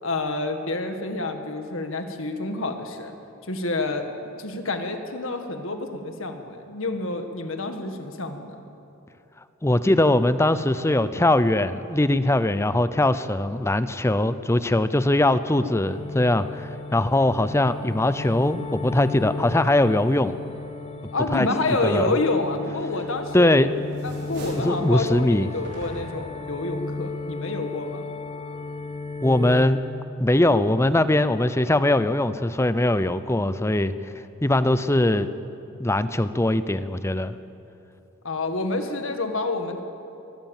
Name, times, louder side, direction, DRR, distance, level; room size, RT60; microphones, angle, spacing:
voice 1, 0.0-3.1 3.5-4.1 4.4-8.6 21.1-23.5 24.0-28.0 38.2-39.8, left 2 dB, 70° left, 6 dB, 1.9 m, -28 dB
voice 2, 9.6-20.3 21.3-21.5 21.8-22.1 23.3-23.7 24.6-25.5 29.2-29.8 30.2-33.9 34.4-35.3 35.8-37.4, left 1 dB, 15° left, 13 dB, 0.6 m, -21 dB
sound 1, 15.8-29.6, left 3 dB, 30° left, 1.4 m, -35 dB
sound 2, 23.1-23.5 23.8-24.8 25.6-26.3, right 1 dB, 55° right, 5.9 m, -41 dB
22.5 x 16.5 x 7.3 m, 2.8 s
head